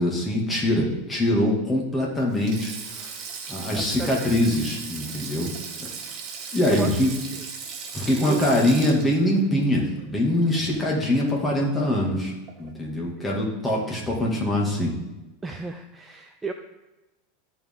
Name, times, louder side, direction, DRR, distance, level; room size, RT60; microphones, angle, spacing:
voice 1, 0.0-3.1 3.5-5.5 6.5-7.1 7.9-14.9, left 1 dB, 15° left, -3 dB, 2.4 m, -23 dB
Sink (filling or washing), 2.3-10.8 11.1-11.3 12.5-12.7, right 5 dB, 45° right, 1.5 m, -37 dB
voice 2, 3.7-4.3 6.6-7.0 7.3-7.4 8.2-8.4 11.8-12.1 13.2-13.3 15.4-16.5, right 4 dB, 15° right, 5 dB, 0.5 m, -33 dB
13.5 x 4.6 x 3.8 m, 1.0 s
supercardioid pair, 120°, 0 cm